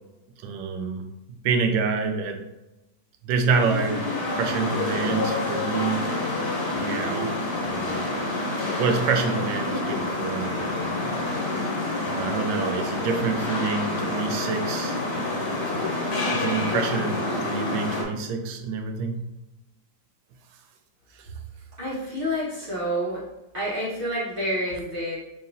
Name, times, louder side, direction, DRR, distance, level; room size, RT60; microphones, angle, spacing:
voice 1, 0.4-1.1 1.4-2.4 3.2-4.1 4.3-6.1 6.7-7.3 7.6-8.1 8.8-11.2 12.0-15.8 16.3-19.2 21.2-21.3, right 5 dB, 80° right, 5 dB, 1.3 m, -27 dB
sound 1, 3.5-18.0, left 2 dB, 60° left, 1.5 m, -28 dB
voice 2, 21.8-23.2 23.5-25.2, equal, 35° right, -8 dB, 1.1 m, -28 dB
4.6 x 3.0 x 2.6 m, 0.98 s
omnidirectional pair, 2.1 m